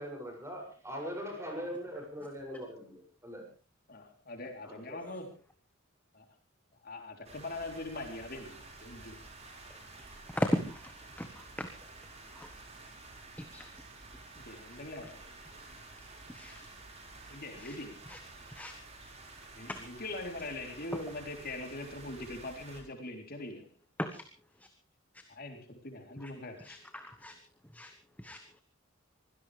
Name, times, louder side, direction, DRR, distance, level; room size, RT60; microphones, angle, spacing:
voice 1, 0.0-3.5 4.6-5.1, equal, 15° right, 2 dB, 7.0 m, -41 dB
voice 2, 3.9-5.3 6.1-6.3 6.8-9.2 14.4-15.3 17.3-18.0 19.5-23.7 25.3-26.8, left 2 dB, 50° left, 4 dB, 3.7 m, -42 dB
sound 1, 7.2-22.8, right 2 dB, 35° right, 5.3 m, -51 dB
voice 3, 10.3-10.9 11.2-11.7 12.4-12.5 13.4-13.7 16.3-16.7 17.6-17.7 18.1-18.2 18.5-18.7 19.7-19.8 24.0-24.2 26.2-26.3 26.6-27.3 27.7-27.9 28.2-28.6, equal, 10° left, 6 dB, 1.4 m, -36 dB
24.5 x 17.0 x 3.4 m, 0.36 s
head